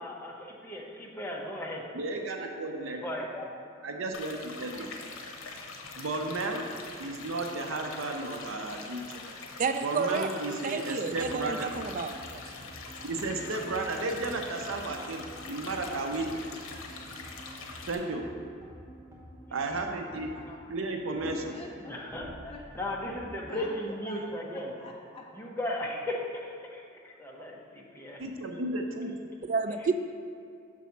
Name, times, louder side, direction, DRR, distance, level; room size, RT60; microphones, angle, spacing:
voice 1, 0.0-1.8 2.8-3.6 21.8-22.3 22.7-24.7 25.3-28.2, left 1 dB, 10° left, -2 dB, 0.8 m, -36 dB
voice 2, 1.9-3.0 3.8-4.9 5.9-6.7 7.0-9.0 9.8-11.7 13.0-16.4 17.9-18.2 19.5-20.3 20.7-21.3 28.2-29.1, right 2 dB, 80° right, 3 dB, 0.6 m, -33 dB
sound 1, 4.1-17.9, left 3 dB, 85° left, 0.8 m, -44 dB
voice 3, 9.6-10.3 10.6-12.4 29.4-30.0, right 5 dB, 40° right, 8 dB, 0.4 m, -30 dB
sound 2, 11.0-23.3, equal, 15° right, 1.1 m, -50 dB
voice 4, 20.2-20.6 21.3-23.1 23.5-25.2, left 3 dB, 30° left, -1 dB, 0.4 m, -46 dB
6.2 x 4.1 x 5.7 m, 2.4 s
head